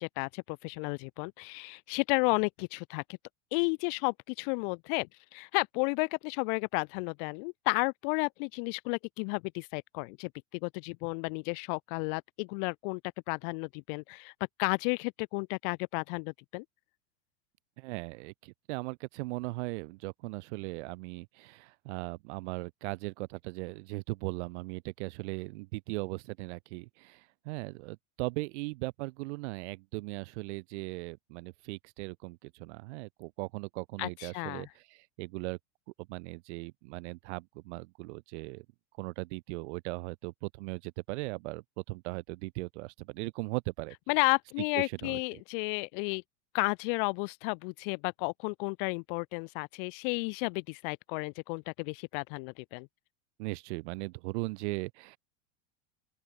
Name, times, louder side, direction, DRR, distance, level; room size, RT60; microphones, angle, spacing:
voice 1, 0.0-3.0 3.5-5.1 5.3-10.3 10.6-13.0 13.3-14.3 14.6-16.6 34.0-34.7 44.1-46.2 46.5-52.9, left 39 dB, 45° left, 0.4 m, -32 dB
voice 2, 17.8-35.6 36.1-38.6 39.0-43.9 44.7-45.2 53.4-55.2, right 24 dB, 65° right, 1.5 m, -38 dB
open air
supercardioid pair, 135°, 37 cm